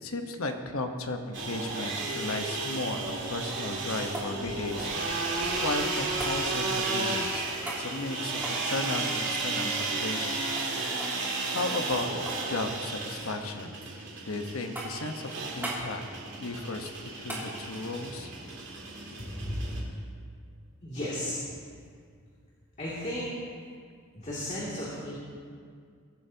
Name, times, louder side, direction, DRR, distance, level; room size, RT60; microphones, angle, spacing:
voice 1, 0.0-7.4 7.8-10.4 11.5-12.1 12.5-13.8 14.2-16.0 16.4-18.3, left 2 dB, 75° left, 5 dB, 1.1 m, -35 dB
sound 1, 1.3-19.8, right 3 dB, 55° right, 2.7 m, -33 dB
sound 2, 4.1-5.6 6.2-6.4 7.6-7.9 8.3-10.3 10.6-10.7 11.0-11.2 11.6-12.5 12.7-13.4 13.8-14.3 14.7-15.1 15.6-15.9 17.3-17.5 19.9-20.0, right 1 dB, 10° right, 2.6 m, -40 dB
voice 2, 19.2-19.6 20.8-21.4 22.8-23.3 24.1-25.2, left 1 dB, 35° left, -8 dB, 2.5 m, -34 dB
22.5 x 12.5 x 2.9 m, 2.1 s
head